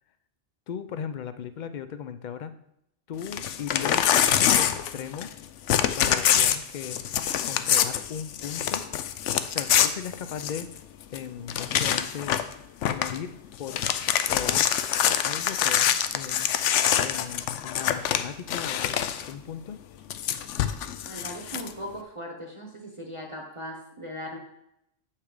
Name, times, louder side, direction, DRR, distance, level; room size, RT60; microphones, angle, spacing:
voice 1, 0.7-2.5 3.1-5.3 6.0-7.0 7.4-8.8 9.5-10.7 11.1-12.4 12.9-13.9 14.3-14.7 15.2-16.5 17.0-19.0 19.3-19.8, left 8 dB, 55° left, 11 dB, 0.5 m, -37 dB
Crumpling crinkling / Tearing, 3.2-5.4 5.7-10.8 11.1-11.2 11.5-12.5 12.8-13.2 13.5-19.3 20.1-21.7, left 10 dB, 80° left, 0.9 m, -25 dB
voice 2, 21.1-24.4, equal, 30° right, 0 dB, 0.9 m, -38 dB
8.0 x 5.7 x 4.9 m, 0.78 s
omnidirectional pair, 1.2 m